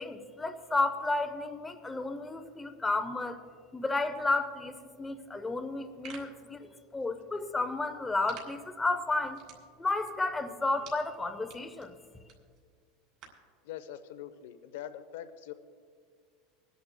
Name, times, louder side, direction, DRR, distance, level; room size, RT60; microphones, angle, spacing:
voice 1, 0.0-3.4 3.7-9.4 9.8-12.0, left 2 dB, 10° left, 8 dB, 0.5 m, -32 dB
sound 1, 5.7-13.5, right 7 dB, 45° right, 2.5 m, -55 dB
voice 2, 13.6-15.5, left 11 dB, 70° left, 12 dB, 0.7 m, -43 dB
26.5 x 10.5 x 2.2 m, 2.1 s
supercardioid pair, 180°, 0 cm